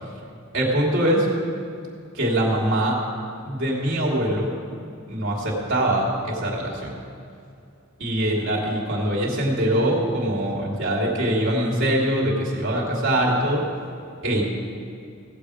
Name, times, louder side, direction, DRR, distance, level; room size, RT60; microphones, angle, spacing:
voice 1, 0.5-1.3 2.1-3.0 3.4-4.5 5.1-6.9 8.0-13.6 14.2-14.4, right 1 dB, 60° right, -4 dB, 2.9 m, -23 dB
17.5 x 7.8 x 5.0 m, 2.4 s
head